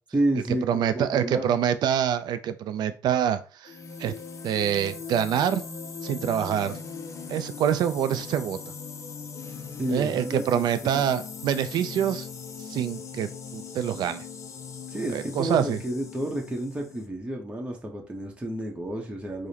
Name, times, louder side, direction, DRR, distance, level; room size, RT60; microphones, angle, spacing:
voice 1, 0.1-1.5 9.8-11.0 14.9-19.5, right 1 dB, 15° right, 0 dB, 0.8 m, -30 dB
voice 2, 0.7-4.1 4.4-5.6 6.0-6.8 7.3-8.6 9.9-12.3 12.6-14.2 15.1-15.8, right 9 dB, 70° right, 11 dB, 0.3 m, -26 dB
sound 1, 3.6-17.1, left 5 dB, 40° left, 0.6 m, -39 dB
4.8 x 2.1 x 2.8 m, 0.36 s
cardioid pair, 90°, 8 cm